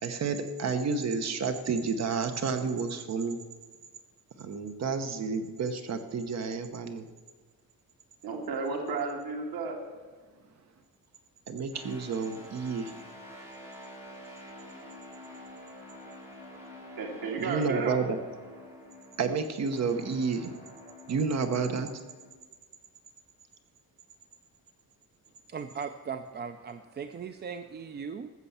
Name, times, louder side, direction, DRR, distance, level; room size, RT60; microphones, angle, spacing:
voice 1, 0.0-3.4 4.4-7.1 11.5-12.9 17.4-18.2 19.2-20.5 21.1-21.9, right 5 dB, 45° right, 8 dB, 1.0 m, -30 dB
voice 2, 8.2-9.8 17.0-18.0, right 4 dB, 85° right, 1 dB, 2.0 m, -33 dB
sound 1, 11.7-22.3, left 1 dB, 5° right, 2.6 m, -48 dB
voice 3, 25.5-28.3, right 6 dB, 30° right, 9 dB, 0.4 m, -38 dB
14.0 x 6.9 x 7.2 m, 1.4 s
wide cardioid pair, 175°, 35 cm